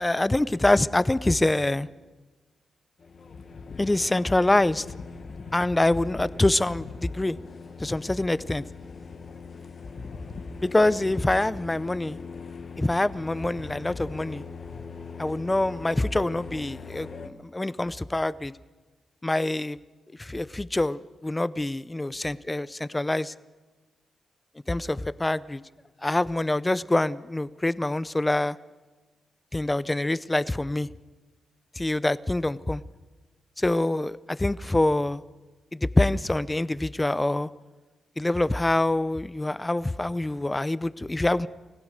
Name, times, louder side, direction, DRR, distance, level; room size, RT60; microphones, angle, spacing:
voice 1, 0.0-1.9 3.8-4.9 5.5-7.4 7.8-8.6 10.6-12.2 12.8-14.4 15.2-18.5 19.2-19.8 20.2-23.3 24.7-25.6 26.0-28.6 29.5-30.9 31.7-32.8 33.6-35.2 35.7-37.5 38.2-41.5, left 2 dB, 15° left, 17 dB, 0.6 m, -25 dB
sound 1, 3.0-17.3, left 4 dB, 50° left, 1.5 m, -41 dB
28.5 x 16.5 x 6.6 m, 1.2 s
cardioid pair, 100°, 0 cm